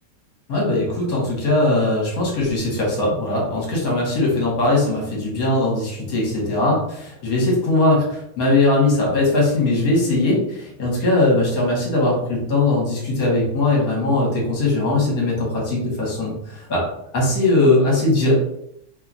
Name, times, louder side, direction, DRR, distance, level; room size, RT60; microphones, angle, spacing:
voice 1, 0.5-16.8 17.1-18.3, left 2 dB, 60° left, -3 dB, 1.3 m, -20 dB
3.1 x 2.2 x 2.5 m, 0.75 s
omnidirectional pair, 2.0 m